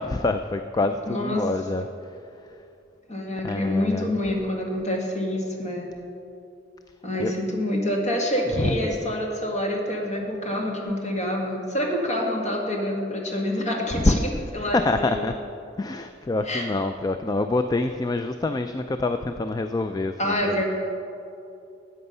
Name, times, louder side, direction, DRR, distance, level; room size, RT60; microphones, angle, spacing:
voice 1, 0.0-1.9 3.4-4.1 7.2-7.3 8.6-8.9 13.9-14.2 14.7-15.3 15.8-20.6, left 2 dB, 20° left, 8 dB, 0.3 m, -26 dB
voice 2, 1.0-1.4 3.1-5.9 7.0-15.3 16.5-16.7 20.2-20.6, left 1 dB, 40° left, 0 dB, 1.9 m, -27 dB
13.5 x 8.7 x 5.5 m, 2.7 s
head